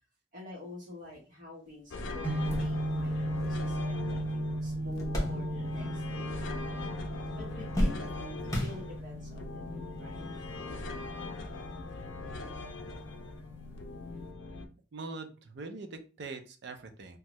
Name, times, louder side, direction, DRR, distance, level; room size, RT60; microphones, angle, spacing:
voice 1, 0.3-6.9 7.3-10.3, left 2 dB, 45° right, -4 dB, 1.1 m, -48 dB
sound 1, 1.7-1.8 2.2-6.0 6.2-6.9 7.2-9.3 10.1-10.2 11.5-11.6, equal, 20° left, 0.9 m, -36 dB
sound 2, 1.9-14.7, left 3 dB, 75° left, 0.5 m, -41 dB
sound 3, 2.2-14.3, right 1 dB, 10° right, 0.8 m, -37 dB
voice 2, 14.9-17.2, right 3 dB, 65° right, 6 dB, 0.5 m, -42 dB
2.7 x 2.3 x 3.0 m, 0.34 s
head